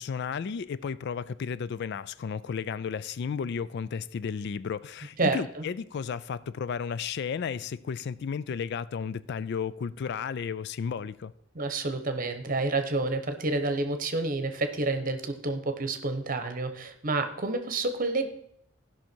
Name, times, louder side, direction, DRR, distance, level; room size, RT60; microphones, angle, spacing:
voice 1, 0.0-11.3, left 6 dB, 55° left, 0.3 m, -33 dB
voice 2, 5.2-5.6 11.5-18.3, right 3 dB, 45° right, 1.0 m, -29 dB
15.5 x 5.8 x 4.5 m
head